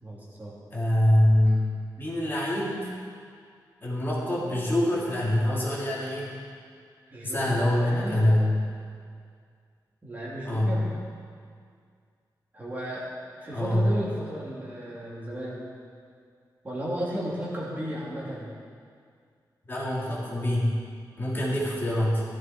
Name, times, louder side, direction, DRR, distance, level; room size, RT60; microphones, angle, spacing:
voice 1, 0.0-0.5 7.1-8.3 10.0-10.9 12.5-13.0 13.4-15.6 16.6-18.5, right 1 dB, 20° right, -7 dB, 3.3 m, -34 dB
voice 2, 0.7-1.7 2.0-2.9 3.8-6.3 7.2-8.5 10.5-10.8 13.5-13.9 19.7-20.7 21.2-22.2, left 1 dB, 30° left, -6 dB, 3.0 m, -24 dB
15.0 x 13.5 x 4.6 m, 2.1 s
wide cardioid pair, 165°, 8 cm